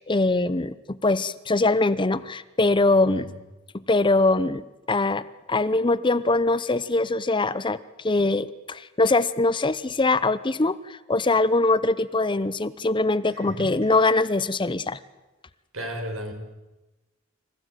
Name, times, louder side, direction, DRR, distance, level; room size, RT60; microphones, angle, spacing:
voice 1, 0.0-3.3 3.9-4.6 4.9-15.0, left 2 dB, 25° left, 15 dB, 0.7 m, -22 dB
voice 2, 13.3-13.7 15.7-16.3, equal, 90° right, 4 dB, 5.8 m, -34 dB
26.5 x 15.0 x 9.1 m, 1.1 s
head